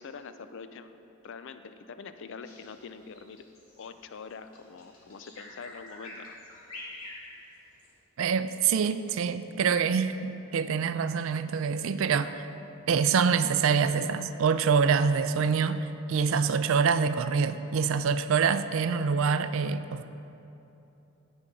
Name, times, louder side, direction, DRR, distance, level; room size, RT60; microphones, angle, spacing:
voice 1, 0.0-3.5 3.8-6.4, left 5 dB, 60° left, 10 dB, 0.4 m, -44 dB
Bird vocalization bird call bird song, 2.4-8.0, left 2 dB, 85° left, 2.0 m, -47 dB
voice 2, 8.2-12.5 12.9-20.0, right 6 dB, 65° right, 12 dB, 0.4 m, -26 dB
15.5 x 5.4 x 3.7 m, 2.9 s
head